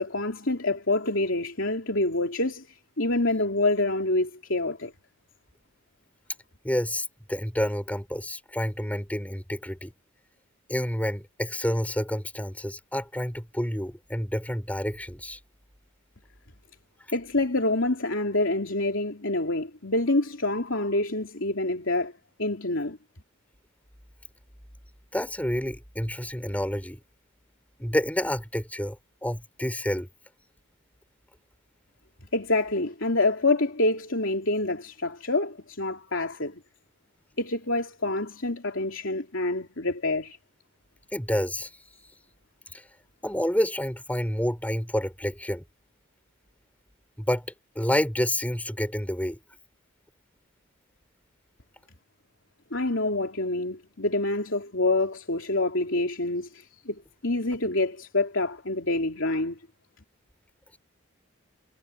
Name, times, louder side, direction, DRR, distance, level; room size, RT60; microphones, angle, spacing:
voice 1, 0.0-4.9 17.1-22.1 22.4-23.0 32.3-36.6 37.4-40.4 52.7-59.6, left 2 dB, 60° left, 3.3 m, -27 dB
voice 2, 6.6-9.9 10.7-15.4 25.1-27.0 27.8-29.0 29.2-30.1 41.1-41.7 42.7-42.8 43.2-45.6 47.2-47.4 47.7-49.4, equal, 5° left, 6.2 m, -29 dB
head